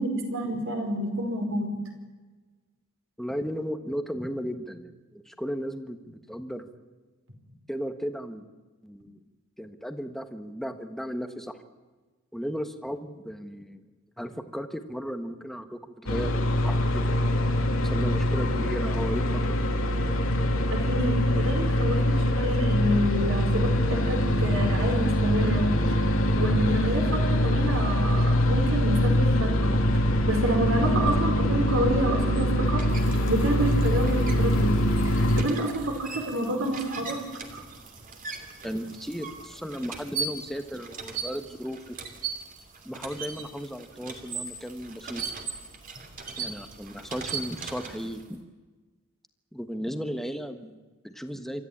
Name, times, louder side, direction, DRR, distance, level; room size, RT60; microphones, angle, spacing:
voice 1, 0.0-1.7 20.7-29.7 30.3-32.8 33.3-34.7 35.0-37.2 37.5-37.6, right 1 dB, 65° right, 3 dB, 4.9 m, -28 dB
voice 2, 3.2-6.7 7.7-8.4 8.8-9.2 9.6-11.6 12.3-13.8 14.2-17.3 17.8-19.6 38.6-42.0 42.8-45.2 46.4-48.4 49.5-51.7, equal, ahead, 8 dB, 1.4 m, -35 dB
sound 1, 16.1-35.4, equal, 65° left, 2.5 m, -24 dB
sound 2, 32.1-48.3, right 5 dB, 40° right, 2.9 m, -39 dB
27.0 x 13.5 x 8.7 m, 1.3 s
head